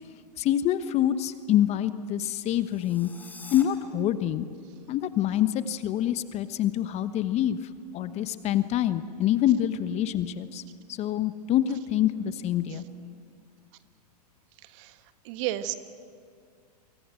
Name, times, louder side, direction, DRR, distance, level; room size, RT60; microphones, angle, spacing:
voice 1, 0.4-3.1 3.5-4.5 4.9-7.6 7.9-10.6 11.0-12.8, left 11 dB, 30° left, 12 dB, 1.1 m, -26 dB
sound 1, 2.6-3.6, left 3 dB, 10° left, 4.2 m, -46 dB
voice 2, 14.6-15.7, right 14 dB, 45° right, 10 dB, 1.5 m, -34 dB
28.0 x 23.5 x 7.8 m, 2.2 s
hypercardioid pair, 110°, 21 cm